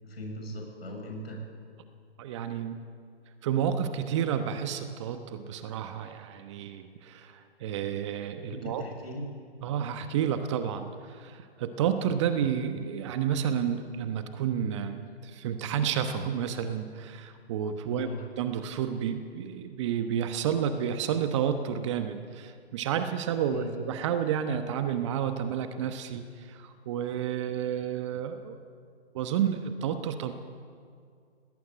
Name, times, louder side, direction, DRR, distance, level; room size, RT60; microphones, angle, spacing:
voice 1, 0.0-1.4 8.5-9.3 17.9-18.3 23.5-23.7, left 1 dB, 65° left, 2 dB, 7.1 m, -38 dB
voice 2, 2.2-2.8 3.4-8.8 9.6-18.1 18.4-28.6 29.1-30.3, right 8 dB, 25° right, 8 dB, 1.1 m, -30 dB
19.5 x 18.5 x 9.0 m, 2.2 s
hypercardioid pair, 145°, 33 cm